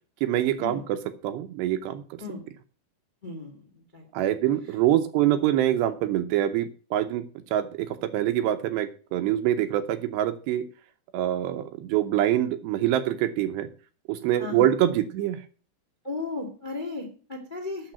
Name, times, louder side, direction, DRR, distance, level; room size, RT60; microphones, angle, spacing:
voice 1, 0.2-2.2 4.1-7.2 7.5-10.6 11.1-13.7 14.1-15.4, right 12 dB, 80° right, 10 dB, 2.8 m, -25 dB
voice 2, 3.2-4.0 14.4-14.7 16.0-17.9, left 3 dB, 20° left, 4 dB, 1.3 m, -35 dB
8.9 x 7.1 x 8.3 m, 0.39 s
omnidirectional pair, 5.2 m